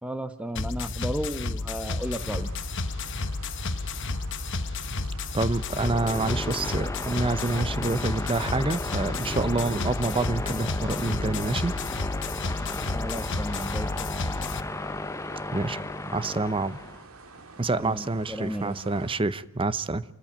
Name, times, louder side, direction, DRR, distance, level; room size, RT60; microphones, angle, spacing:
voice 1, 0.0-2.5 12.9-14.1 17.7-18.8, equal, 5° right, 1.4 m, -34 dB
sound 1, 0.6-14.6, left 3 dB, 60° left, 1.1 m, -31 dB
sound 2, 2.0-19.2, right 3 dB, 85° right, 2.1 m, -48 dB
voice 2, 5.3-11.8 15.5-15.8 16.1-16.8 17.6-20.0, right 3 dB, 25° right, 0.7 m, -27 dB
sound 3, 5.5-17.0, left 2 dB, 15° left, 0.8 m, -35 dB
26.5 x 14.0 x 8.9 m
head